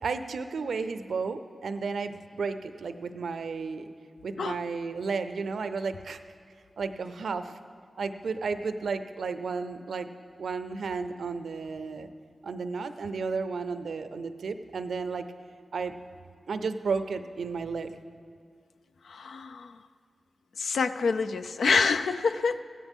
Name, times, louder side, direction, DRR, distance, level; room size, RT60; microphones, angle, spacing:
voice 1, 0.0-3.9 4.2-6.2 6.8-7.6 8.0-10.1 10.4-12.1 12.4-15.3 15.7-16.0 16.5-17.9, right 4 dB, 85° right, 10 dB, 0.5 m, -33 dB
voice 2, 19.0-19.8 20.6-22.6, left 5 dB, 85° left, 10 dB, 0.4 m, -27 dB
15.0 x 12.0 x 3.6 m, 2.2 s
cardioid pair, 40°, 0 cm